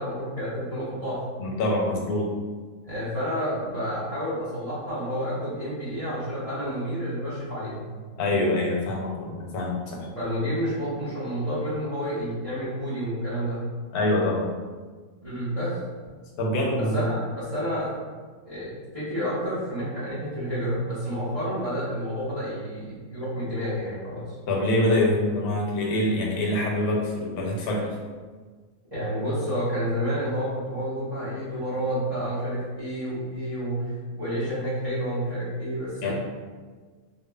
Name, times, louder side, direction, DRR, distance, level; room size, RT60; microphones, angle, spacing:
voice 1, 0.0-1.2 2.8-7.9 10.1-13.7 15.2-15.7 16.8-18.0 18.4-24.4 28.9-36.1, equal, 35° right, -12 dB, 0.6 m, -30 dB
voice 2, 1.4-2.3 8.2-10.1 13.9-14.4 16.4-17.1 24.5-27.9 36.0-36.1, left 1 dB, 85° left, -1 dB, 1.1 m, -25 dB
2.9 x 2.0 x 2.2 m, 1.5 s
omnidirectional pair, 1.5 m